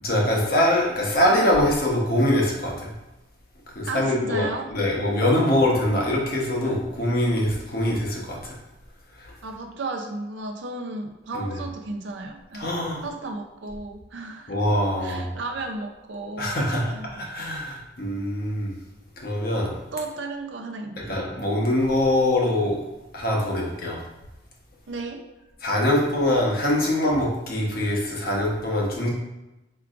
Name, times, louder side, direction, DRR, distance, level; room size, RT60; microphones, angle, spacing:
voice 1, 0.0-2.9 3.7-8.6 9.2-9.3 11.3-11.5 12.6-13.0 14.5-15.3 16.4-16.9 17.2-18.7 19.2-19.8 21.1-22.8 23.1-24.0 25.6-29.1, left 1 dB, 55° left, -2 dB, 1.1 m, -23 dB
voice 2, 3.8-4.7 9.4-12.7 13.0-14.6 15.0-16.6 16.9-17.3 19.9-21.2 24.9-25.2, right 2 dB, 75° right, 4 dB, 0.6 m, -34 dB
4.6 x 4.6 x 2.5 m, 0.99 s
head